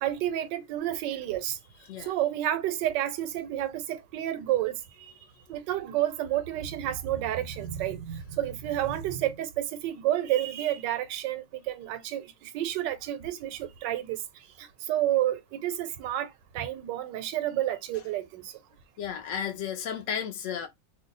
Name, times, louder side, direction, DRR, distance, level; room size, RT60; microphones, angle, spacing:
voice 1, 0.0-1.6 2.0-4.8 5.5-14.2 14.6-16.3 16.5-18.5, right 12 dB, 90° right, 1.2 m, -30 dB
voice 2, 19.0-20.7, left 8 dB, 80° left, 0.7 m, -33 dB
2.9 x 2.1 x 3.8 m
omnidirectional pair, 1.8 m